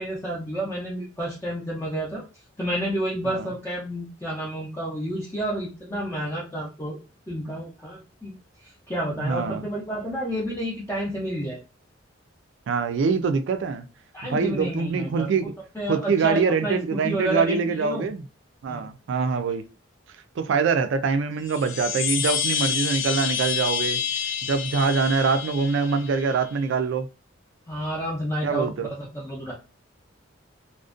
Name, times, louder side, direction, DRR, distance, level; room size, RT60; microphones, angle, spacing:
voice 1, 0.0-2.2 2.6-7.0 7.3-8.3 8.6-11.6 14.1-15.5 15.8-18.1 18.7-18.9 27.7-28.7 29.0-29.5, right 1 dB, 10° left, 0.4 m, -30 dB
voice 2, 9.2-9.6 12.7-13.9 14.2-15.5 15.9-18.2 18.6-19.7 20.4-24.0 24.5-27.1 28.4-28.9, right 5 dB, 65° right, 0.3 m, -24 dB
sound 1, 21.4-26.4, left 8 dB, 85° left, 0.4 m, -28 dB
2.4 x 2.1 x 2.4 m
head